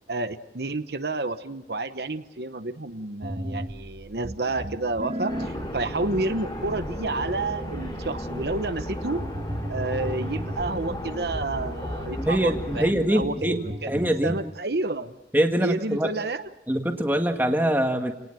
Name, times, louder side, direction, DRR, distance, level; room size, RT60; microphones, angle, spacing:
voice 1, 0.1-9.2 9.7-15.1 15.6-16.5, right 2 dB, 70° right, 9 dB, 1.0 m, -30 dB
sound 1, 3.2-14.5, equal, 40° right, 1.8 m, -37 dB
sound 2, 5.3-12.9, equal, 25° left, 5.0 m, -34 dB
voice 2, 12.2-13.6 13.9-14.4 15.3-16.1 16.7-18.1, equal, 10° right, 4 dB, 1.9 m, -23 dB
29.5 x 19.0 x 7.7 m, 0.95 s
head